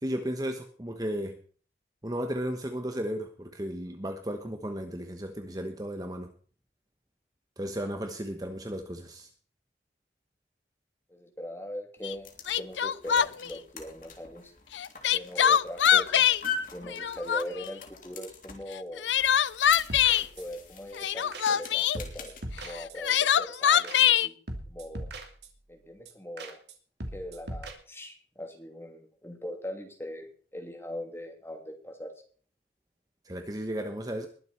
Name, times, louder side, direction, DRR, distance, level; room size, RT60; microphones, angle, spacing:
voice 1, 0.0-1.4 2.0-6.3 7.6-9.3 33.2-34.3, equal, 20° right, 6 dB, 1.1 m, -34 dB
voice 2, 11.1-14.5 15.1-16.3 16.7-19.0 20.2-24.3 24.7-25.1 25.7-26.6 27.1-32.1, equal, 15° left, 3 dB, 2.9 m, -41 dB
Crying sobbing, 12.0-12.1 12.5-13.5 14.7-16.4 16.9-17.7 18.7-20.3 20.9-22.0 22.7-24.3, left 9 dB, 90° left, 0.5 m, -23 dB
sound 1, 12.0-22.4, left 5 dB, 50° left, 3.2 m, -43 dB
sound 2, 19.6-20.7 21.0-21.1 21.3-21.7 21.9-23.2 23.5-23.6 23.8-24.2 24.5-25.7 26.0-26.1 26.4-26.7 27.0-27.7, right 1 dB, 70° right, 2.7 m, -41 dB
21.0 x 7.9 x 4.4 m, 0.43 s
head